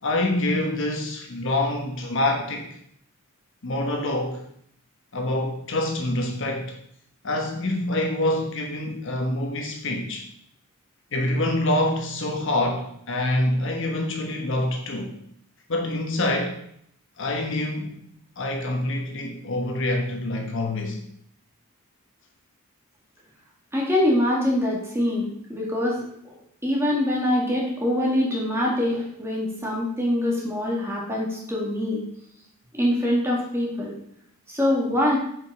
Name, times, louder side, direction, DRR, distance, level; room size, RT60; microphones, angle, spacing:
voice 1, 0.0-2.7 3.6-4.4 5.1-6.7 7.2-10.2 11.1-15.1 15.7-16.6 17.2-17.9 18.4-21.0, left 1 dB, 60° left, 2 dB, 1.2 m, -26 dB
voice 2, 23.7-26.4 26.6-32.0 32.7-33.9 34.5-35.2, left 1 dB, 10° right, -3 dB, 1.9 m, -24 dB
7.0 x 5.2 x 4.9 m, 0.69 s
head